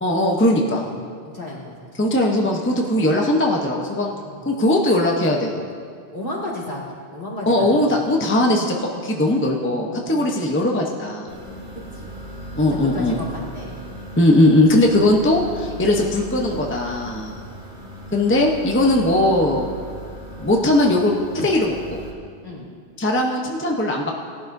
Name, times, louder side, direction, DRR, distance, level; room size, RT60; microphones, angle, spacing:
voice 1, 0.0-0.8 2.0-4.1 4.5-5.6 7.5-11.3 12.5-13.2 14.2-17.3 18.1-19.7 20.4-22.0 23.0-24.1, left 1 dB, 15° left, 0 dB, 0.8 m, -19 dB
voice 2, 0.8-1.9 2.9-3.2 4.0-4.6 6.1-8.0 9.2-10.3 11.9-12.2 12.7-13.8 14.8-15.2 22.4-22.7, left 1 dB, 55° left, -5 dB, 2.5 m, -34 dB
sound 1, 11.3-22.1, right 1 dB, 55° right, 2.2 m, -37 dB
17.5 x 11.5 x 2.7 m, 2.2 s
omnidirectional pair, 1.1 m